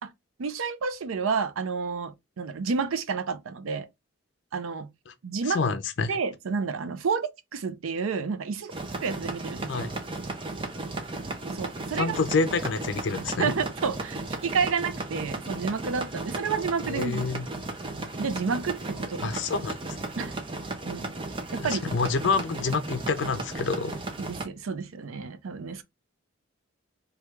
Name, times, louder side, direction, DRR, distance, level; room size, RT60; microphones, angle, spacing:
voice 1, 0.4-3.9 4.5-4.9 5.2-5.6 6.1-8.7 9.0-9.9 11.5-12.2 13.4-17.2 18.2-19.4 20.2-20.4 20.8-21.2 21.5-21.8 24.2-25.8, right 5 dB, 85° right, 0.5 m, -30 dB
voice 2, 5.4-6.1 9.7-9.9 12.0-13.6 16.8-17.5 19.2-19.8 21.6-24.0, left 4 dB, 60° left, 0.5 m, -27 dB
sound 1, 8.7-24.5, right 2 dB, 25° right, 0.5 m, -35 dB
3.0 x 2.3 x 3.3 m
head